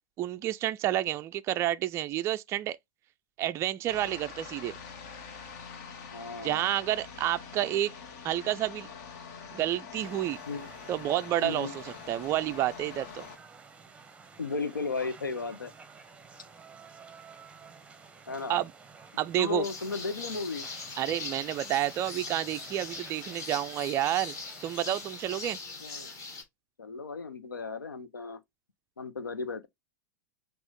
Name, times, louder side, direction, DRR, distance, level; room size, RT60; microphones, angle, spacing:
voice 1, 0.2-2.8 3.4-4.7 6.4-7.9 8.2-8.9 9.5-10.4 10.9-13.3 18.5-18.7 19.2-19.6 21.0-24.4 24.6-25.6, right 13 dB, 25° right, 0.3 m, -30 dB
sound 1, 3.9-13.4, left 6 dB, 50° left, 1.2 m, -45 dB
voice 2, 6.1-6.7 10.5-10.7 11.4-11.7 14.4-15.7 18.3-18.6 19.4-20.7 25.8-26.1 26.8-28.4 29.0-29.7, left 4 dB, 80° left, 0.7 m, -35 dB
sound 2, 10.0-25.5, right 5 dB, 10° right, 0.8 m, -52 dB
sound 3, 19.6-26.4, left 4 dB, 30° left, 2.0 m, -41 dB
6.1 x 2.4 x 3.4 m
figure-of-eight pair, 95°, 11 cm